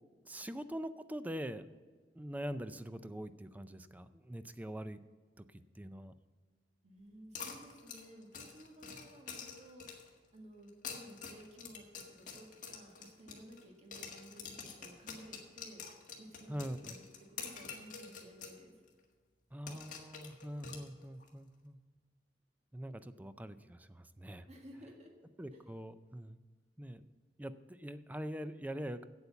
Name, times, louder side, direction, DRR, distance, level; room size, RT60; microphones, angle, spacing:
voice 1, 0.3-1.7 2.2-5.0 5.8-6.1 16.5-17.0 19.5-21.8 22.7-24.5 25.4-26.4 26.8-27.1 27.4-29.1, equal, 10° right, 12 dB, 0.4 m, -43 dB
voice 2, 6.8-9.9 10.3-15.8 16.2-17.0 17.3-18.8 24.5-25.1 25.5-25.6, right 1 dB, 40° right, 0 dB, 1.7 m, -55 dB
sound 1, 7.3-10.2 10.7-13.6 13.9-18.6 18.9-19.0 19.7-21.3, left 6 dB, 50° left, 1.7 m, -47 dB
8.4 x 8.3 x 6.9 m, 1.5 s
head